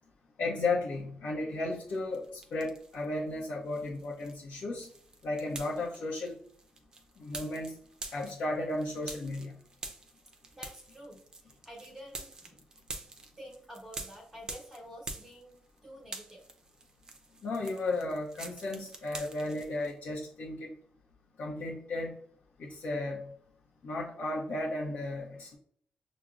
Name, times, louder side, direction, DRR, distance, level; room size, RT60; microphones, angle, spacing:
voice 1, 0.4-4.9 5.2-6.4 7.2-7.7 8.1-9.5 17.4-20.7 21.4-22.1 22.6-23.3 23.8-25.6, left 2 dB, 60° left, -4 dB, 0.7 m, -34 dB
sound 1, 1.9-3.1 3.4-19.9, right 3 dB, 25° right, 0.5 m, -46 dB
voice 2, 10.5-12.7 13.4-16.4, equal, 10° right, -7 dB, 1.0 m, -49 dB
6.0 x 2.0 x 2.4 m, 0.63 s
wide cardioid pair, 150°, 3 cm